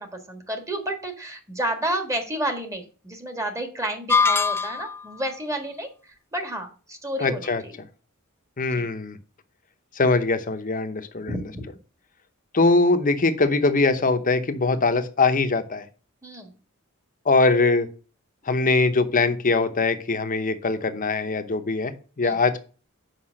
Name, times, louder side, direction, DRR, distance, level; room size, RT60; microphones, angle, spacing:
voice 1, 0.0-5.9 6.3-7.7 8.7-8.9 11.3-11.6 16.2-16.5 22.2-22.4, right 1 dB, 15° right, 5 dB, 1.5 m, -30 dB
sound 1, 4.1-5.1, left 5 dB, 10° left, 0.3 m, -21 dB
voice 2, 7.2-7.6 8.6-9.2 9.9-11.5 12.5-15.9 17.3-17.9 18.5-22.6, left 3 dB, 40° left, 9 dB, 0.8 m, -22 dB
5.8 x 5.3 x 6.3 m, 0.37 s
head